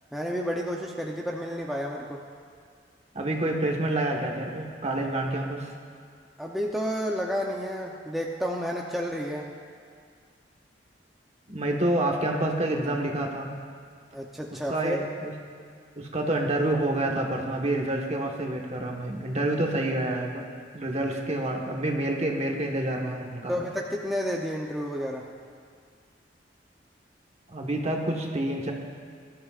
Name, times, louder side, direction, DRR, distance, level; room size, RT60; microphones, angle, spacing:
voice 1, 0.1-2.2 6.4-9.5 14.1-15.0 23.5-25.2, equal, ahead, -2 dB, 0.7 m, -31 dB
voice 2, 3.1-5.7 11.5-13.5 14.7-15.3 16.0-20.5 20.7-23.5 27.5-28.7, right 1 dB, 35° right, 0 dB, 1.4 m, -28 dB
21.0 x 12.5 x 2.5 m, 2.1 s
head